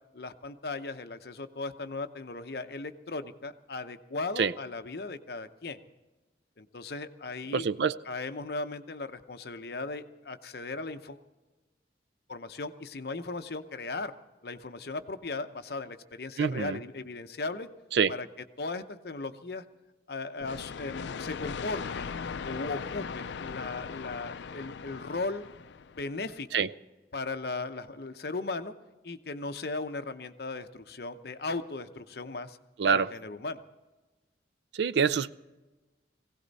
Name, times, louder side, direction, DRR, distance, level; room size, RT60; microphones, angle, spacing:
voice 1, 0.1-5.8 6.6-7.7 8.0-11.2 12.3-14.1 14.4-17.7 18.1-18.3 18.6-19.6 20.1-22.1 22.4-25.4 26.0-26.7 27.1-28.7 29.0-32.6 32.8-33.6, left 3 dB, 60° left, 9 dB, 0.8 m, -37 dB
voice 2, 7.5-7.9 16.4-16.8 17.9-18.1 26.5-26.7 32.8-33.1 34.7-35.3, right 6 dB, 70° right, 15 dB, 0.4 m, -25 dB
sound 1, 20.4-26.1, left 6 dB, 75° left, 0.4 m, -39 dB
19.0 x 17.0 x 4.1 m, 1.2 s
head